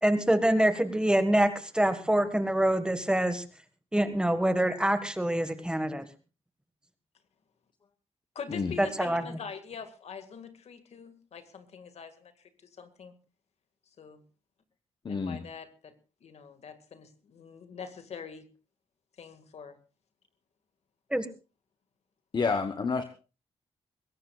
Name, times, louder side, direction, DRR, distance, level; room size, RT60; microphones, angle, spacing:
voice 1, 0.0-3.4 3.9-6.0 8.8-9.2 21.1-21.3, right 1 dB, 10° right, 9 dB, 1.6 m, -25 dB
voice 2, 8.4-13.1 14.0-14.2 15.1-16.0 16.2-18.5 19.2-19.8, left 6 dB, 70° left, 8 dB, 2.0 m, -44 dB
voice 3, 15.0-15.4 22.3-23.0, left 4 dB, 40° left, 9 dB, 1.2 m, -29 dB
22.0 x 17.5 x 2.4 m, 0.33 s
cardioid pair, 95°, 11 cm